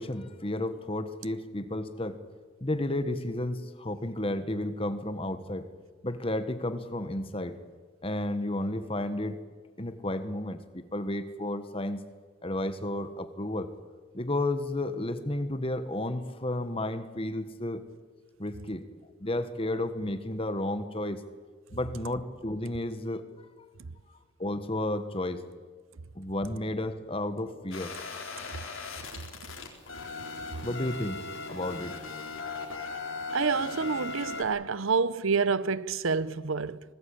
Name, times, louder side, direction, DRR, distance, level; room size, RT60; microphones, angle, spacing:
voice 1, 0.0-2.2 2.6-5.7 6.0-7.6 8.0-9.4 9.8-12.0 12.4-13.7 14.1-17.8 18.4-18.9 19.2-21.2 21.7-23.3 24.4-25.5 26.1-28.0 30.6-32.0, left 1 dB, 25° left, 1.4 m, -32 dB
sound 1, 27.7-34.4, left 3 dB, 70° left, 4.3 m, -38 dB
voice 2, 33.3-36.8, right 5 dB, 75° right, 0.7 m, -28 dB
25.5 x 20.0 x 8.7 m
head